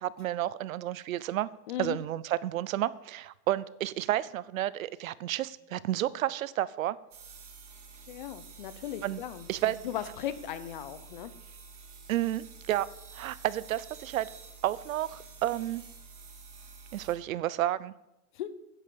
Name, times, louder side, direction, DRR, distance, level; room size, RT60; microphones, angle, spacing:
voice 1, 0.0-1.5 1.8-7.0 9.0-9.2 9.5-9.8 12.1-14.3 14.6-15.8 16.9-17.9, right 13 dB, 65° right, 19 dB, 0.7 m, -31 dB
voice 2, 1.7-2.0 8.1-11.3 18.3-18.5, left 11 dB, 35° left, 13 dB, 0.7 m, -37 dB
sound 1, 7.1-17.1, right 4 dB, 85° right, 4.0 m, -50 dB
10.0 x 9.9 x 6.9 m, 0.92 s
supercardioid pair, 180°, 44 cm